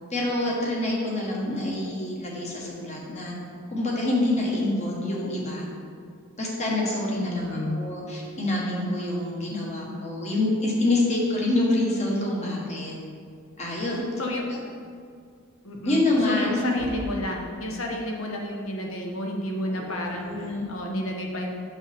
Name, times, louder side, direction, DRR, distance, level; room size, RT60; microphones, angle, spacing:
voice 1, 0.1-3.3 3.7-5.7 6.4-12.9 13.6-14.1 15.8-16.8 19.7-20.7, left 2 dB, 30° left, -3 dB, 1.3 m, -26 dB
voice 2, 7.1-7.8 14.2-14.4 15.6-16.0 16.3-21.6, left 1 dB, 65° left, 1 dB, 1.0 m, -31 dB
sound 1, 16.7-17.5, equal, 10° left, 1.0 m, -40 dB
7.3 x 6.4 x 3.4 m, 2.2 s
head